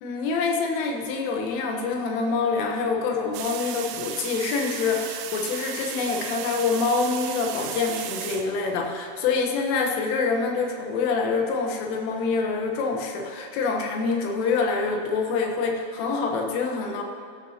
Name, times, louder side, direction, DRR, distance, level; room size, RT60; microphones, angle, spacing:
voice 1, 0.0-17.0, left 4 dB, 80° left, 2 dB, 3.5 m, -26 dB
sound 1, 3.3-9.2, right 10 dB, 90° right, 2.5 m, -35 dB
16.0 x 12.0 x 2.8 m, 2.2 s
omnidirectional pair, 5.7 m